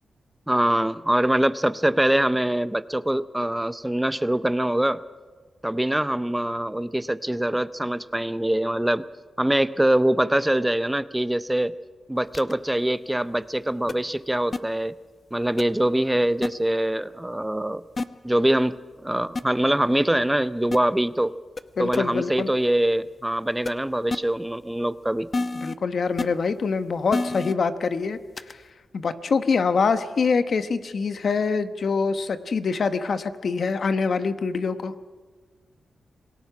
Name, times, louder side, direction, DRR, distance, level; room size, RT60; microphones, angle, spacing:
voice 1, 0.5-5.0 5.6-9.0 9.4-11.7 12.1-14.9 15.3-17.8 18.2-18.8 19.0-21.3 21.8-25.3, right 1 dB, 10° right, 14 dB, 0.6 m, -23 dB
sound 1, 12.3-12.5 13.9-14.0 14.5-14.6 15.6-15.7 16.4-16.5 18.0-18.1 19.3-19.4 20.7-20.8 21.6-21.7 21.9-22.0 23.6-23.7 24.1-24.2 25.3-25.7 26.2-26.3 27.1-27.5 28.4-28.5, left 3 dB, 40° left, 0.8 m, -27 dB
voice 2, 21.8-22.5 25.5-28.2 28.5-28.6 28.9-34.9, left 5 dB, 65° left, 10 dB, 1.1 m, -25 dB
26.5 x 18.5 x 6.0 m, 1.4 s
cardioid pair, 75°, 0 cm